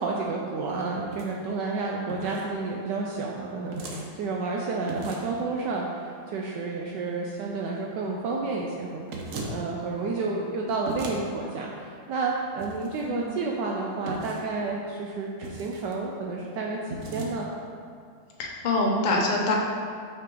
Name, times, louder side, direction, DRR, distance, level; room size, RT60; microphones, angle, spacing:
voice 1, 0.0-17.5, right 3 dB, 75° right, -1 dB, 1.1 m, -31 dB
sound 1, 1.0-1.3 2.1-2.5 3.7-4.1 4.9-5.4 9.1-9.6 10.9-11.2 12.6-13.0 14.1-14.5 15.4-15.9 16.9-17.3, right 2 dB, 60° right, 0.9 m, -37 dB
voice 2, 18.4-19.5, left 2 dB, 60° left, -2 dB, 0.4 m, -25 dB
5.9 x 5.7 x 3.8 m, 2.2 s
omnidirectional pair, 2.1 m